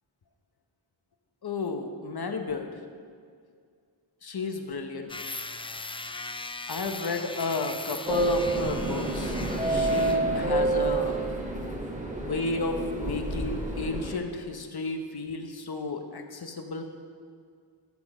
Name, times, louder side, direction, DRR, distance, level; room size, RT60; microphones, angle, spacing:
voice 1, 1.4-2.8 4.2-5.0 6.7-9.4 9.7-11.3 12.2-16.8, left 3 dB, 55° left, 5 dB, 1.2 m, -32 dB
sound 1, 5.1-10.2, left 3 dB, 15° left, 0.3 m, -39 dB
sound 2, 8.1-14.2, right 2 dB, 15° right, 1.5 m, -28 dB
12.0 x 7.1 x 5.0 m, 2.1 s
cardioid pair, 65°, 46 cm